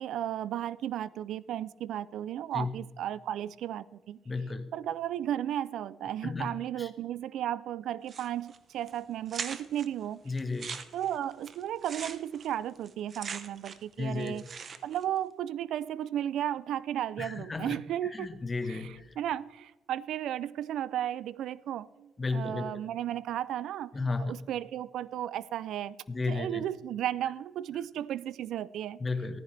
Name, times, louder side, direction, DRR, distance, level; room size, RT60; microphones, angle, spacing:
voice 1, 0.0-4.2 4.7-10.2 10.9-14.4 14.8-23.9 24.2-26.0 26.3-29.0, right 11 dB, 80° right, 0.4 m, -34 dB
voice 2, 4.2-4.7 6.2-6.9 10.2-10.8 14.0-14.3 17.2-17.8 18.0-19.1 22.2-22.8 23.9-24.3 26.1-26.6 29.0-29.4, left 3 dB, 25° left, 1.4 m, -33 dB
sound 1, 8.1-8.6 8.9-9.0 9.3-9.9 10.4-13.9 14.2-15.0, right 6 dB, 50° right, 0.9 m, -41 dB
15.0 x 13.0 x 3.4 m
cardioid pair, 90°, 0 cm